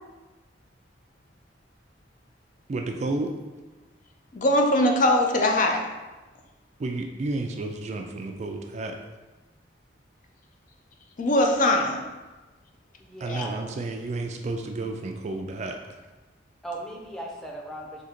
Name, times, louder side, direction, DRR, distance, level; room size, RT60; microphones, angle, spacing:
voice 1, 2.7-3.3 6.8-9.0 13.2-16.0, right 2 dB, 40° right, 3 dB, 0.3 m, -31 dB
voice 2, 4.3-5.9 11.2-12.0 13.3-13.4, left 1 dB, 45° left, 2 dB, 0.5 m, -21 dB
voice 3, 13.0-13.5 16.6-18.0, right 1 dB, ahead, -2 dB, 0.6 m, -37 dB
3.7 x 2.8 x 4.3 m, 1.2 s
head